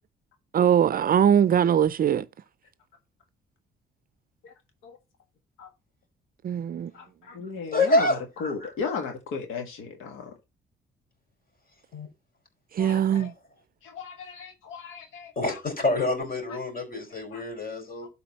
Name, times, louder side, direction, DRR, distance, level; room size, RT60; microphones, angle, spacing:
voice 1, 0.5-2.3 6.4-6.9 12.8-13.3, right 9 dB, 45° right, 0.5 m, -21 dB
voice 2, 6.9-10.3 12.8-13.3 13.8-15.6 17.3-17.4, left 5 dB, 90° left, 1.6 m, -36 dB
voice 3, 7.7-8.7 11.9-12.1 12.9-13.3 15.4-18.1, left 2 dB, 45° left, 4.3 m, -27 dB
12.0 x 4.1 x 4.1 m
cardioid pair, 90°, 20 cm